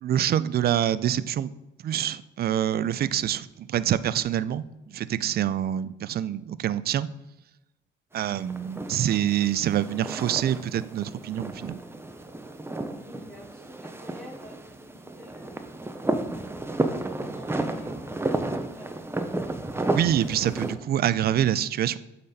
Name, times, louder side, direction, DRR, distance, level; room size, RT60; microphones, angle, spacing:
voice 1, 0.0-1.5 1.8-7.1 8.1-11.8 19.9-22.0, right 11 dB, 50° right, 17 dB, 0.4 m, -26 dB
sound 1, 8.2-20.7, right 2 dB, 10° right, 0.6 m, -32 dB
voice 2, 13.0-15.5 17.1-19.4, equal, 5° left, -8 dB, 2.4 m, -47 dB
8.4 x 4.0 x 4.2 m, 0.96 s
cardioid pair, 90°, 20 cm